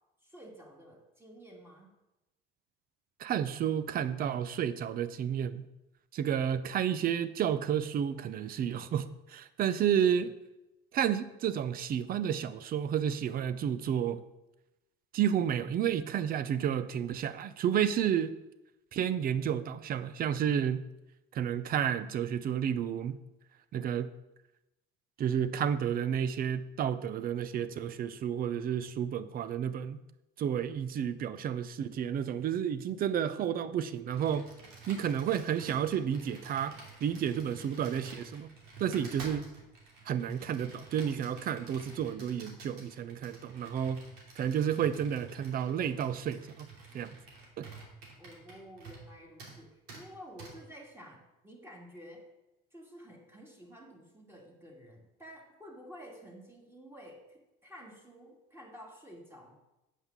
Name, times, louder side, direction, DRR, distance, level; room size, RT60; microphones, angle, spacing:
voice 1, 0.2-1.9 48.2-52.3 52.7-59.6, equal, 10° right, -1 dB, 2.5 m, -51 dB
voice 2, 3.2-5.6 6.1-10.3 10.9-14.2 15.1-18.3 18.9-20.9 21.3-23.2 23.7-24.1 25.2-30.0 30.4-34.5 34.9-38.5 38.8-39.5 40.0-44.0 44.4-46.7 46.9-47.2 47.6-47.7, right 9 dB, 45° right, 14 dB, 0.7 m, -31 dB
Computer keyboard, 34.1-49.1 49.4-49.6 49.9-50.0 50.4-50.5, right 3 dB, 80° right, 2.9 m, -50 dB
8.3 x 5.5 x 7.3 m, 0.95 s
cardioid pair, 120°, 21 cm